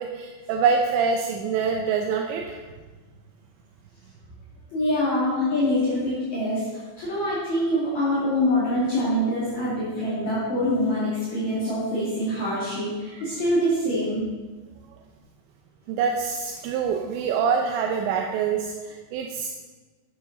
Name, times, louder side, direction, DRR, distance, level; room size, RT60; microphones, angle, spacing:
voice 1, 0.0-2.6 13.1-13.2 15.9-19.5, right 6 dB, 85° right, 3 dB, 2.9 m, -25 dB
voice 2, 4.7-6.7 7.0-14.2, left 1 dB, 45° left, -10 dB, 3.3 m, -24 dB
12.0 x 8.1 x 4.0 m, 1.3 s
omnidirectional pair, 5.2 m